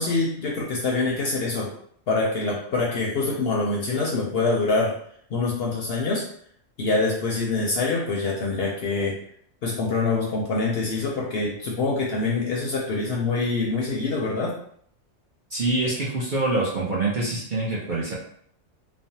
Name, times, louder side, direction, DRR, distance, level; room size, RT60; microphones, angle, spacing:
voice 1, 0.0-1.7 2.1-4.9 5.3-6.2 6.8-9.2 9.6-14.5, left 3 dB, 60° left, -3 dB, 0.7 m, -25 dB
voice 2, 15.5-18.2, right 2 dB, 55° right, -6 dB, 0.6 m, -25 dB
3.1 x 2.0 x 2.7 m, 0.65 s
omnidirectional pair, 1.4 m